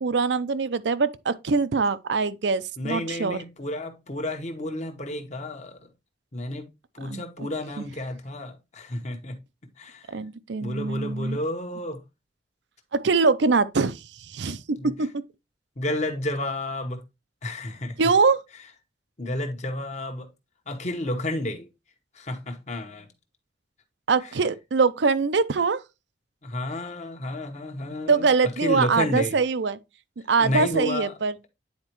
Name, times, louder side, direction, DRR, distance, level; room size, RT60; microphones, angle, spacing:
voice 1, 0.0-3.4 7.1-7.5 7.8-7.9 10.1-11.4 12.9-15.1 18.0-18.4 24.1-25.8 28.1-29.8 30.3-31.5, right 4 dB, 75° right, 0.6 m, -23 dB
voice 2, 2.8-5.9 6.3-6.7 6.9-9.4 9.8-10.1 10.6-12.0 14.4-14.9 15.8-17.0 17.4-18.0 19.2-20.3 20.7-21.7 22.1-23.1 24.2-24.3 26.4-28.3 28.6-29.4 30.4-31.1, left 1 dB, 40° left, 1.1 m, -31 dB
9.5 x 4.3 x 3.0 m
head